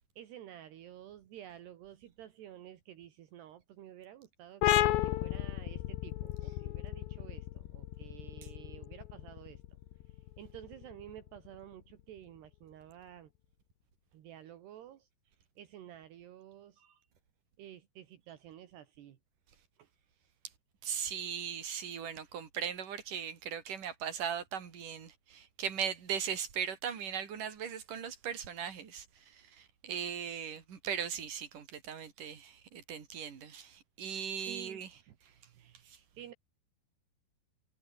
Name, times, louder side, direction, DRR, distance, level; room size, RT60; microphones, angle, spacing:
voice 1, 0.2-9.6 10.1-13.3 14.1-15.1 15.6-17.1 17.6-19.2 19.8-19.9 34.4-35.2 35.5-36.3, right 11 dB, 70° right, 3.8 m, -51 dB
sound 1, 4.6-11.9, left 15 dB, 80° left, 3.4 m, -34 dB
voice 2, 20.8-34.9 35.9-36.0, right 8 dB, 50° right, 4.7 m, -39 dB
omnidirectional pair, 5.1 m